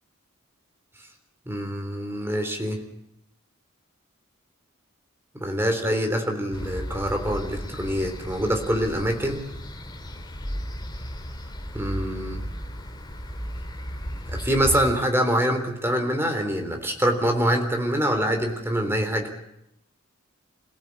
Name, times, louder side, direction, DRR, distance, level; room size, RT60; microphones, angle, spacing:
voice 1, 1.5-2.8 5.4-9.4 11.7-12.4 14.3-19.3, equal, 10° right, 4 dB, 3.8 m, -25 dB
sound 1, 6.5-14.9, equal, 20° left, 2.4 m, -35 dB
27.5 x 17.5 x 8.7 m, 0.82 s
head